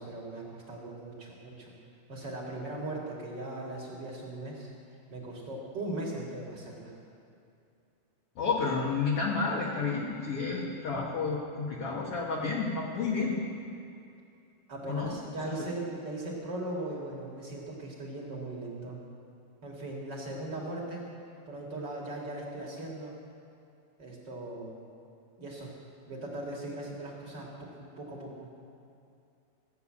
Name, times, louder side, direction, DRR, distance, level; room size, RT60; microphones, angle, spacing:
voice 1, 0.0-1.7 2.1-4.7 5.1-6.9 14.7-19.0 19.6-21.1 21.5-23.2 24.0-24.7 25.4-25.7 26.1-28.5, right 2 dB, 40° right, -2 dB, 1.8 m, -39 dB
voice 2, 8.4-13.4 14.9-15.2 15.4-15.5, left 4 dB, 60° left, -4 dB, 1.5 m, -31 dB
16.0 x 6.9 x 8.6 m, 2.6 s
omnidirectional pair, 4.4 m